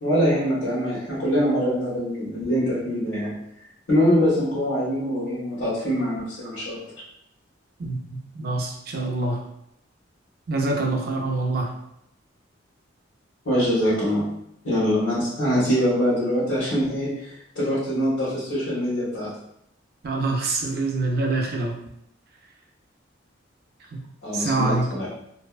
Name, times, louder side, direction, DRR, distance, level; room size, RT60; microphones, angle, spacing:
voice 1, 0.0-3.3 3.9-6.8 13.4-14.3 14.6-19.3 24.2-25.1, equal, 80° left, -11 dB, 1.1 m, -23 dB
voice 2, 7.8-9.4 10.5-11.7 20.0-21.7 23.9-24.0 24.3-24.9, right 2 dB, 50° right, 1 dB, 0.4 m, -25 dB
2.6 x 2.2 x 2.3 m, 0.77 s
head